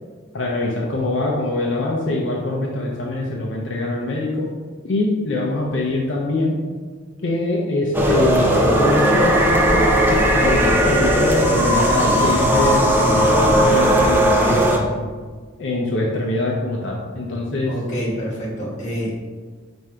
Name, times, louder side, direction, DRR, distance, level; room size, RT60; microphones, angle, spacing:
voice 1, 0.3-4.5 4.8-6.6 7.2-15.1 15.6-17.7, left 2 dB, 75° left, -2 dB, 0.6 m, -23 dB
sound 1, 7.9-14.8, equal, 10° right, 0.4 m, -17 dB
voice 2, 17.7-19.2, equal, 40° left, -5 dB, 1.2 m, -27 dB
4.7 x 2.6 x 4.3 m, 1.5 s
head